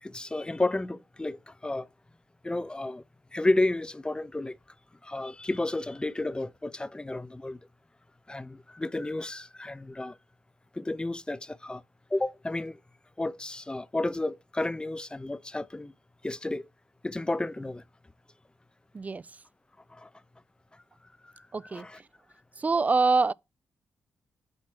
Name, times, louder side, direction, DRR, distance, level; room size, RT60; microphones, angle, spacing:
voice 1, 0.0-1.9 2.4-3.0 3.3-4.6 5.0-7.6 8.3-10.2 10.7-11.8 12.1-12.8 13.2-15.9 16.2-16.7 17.0-17.8 19.9-20.1 20.7-20.8 21.2-22.0, left 2 dB, 15° left, 0.6 m, -32 dB
voice 2, 21.5-21.9 22.6-23.3, right 4 dB, 30° right, 0.4 m, -24 dB
8.8 x 3.1 x 5.9 m
supercardioid pair, 45°, 5 cm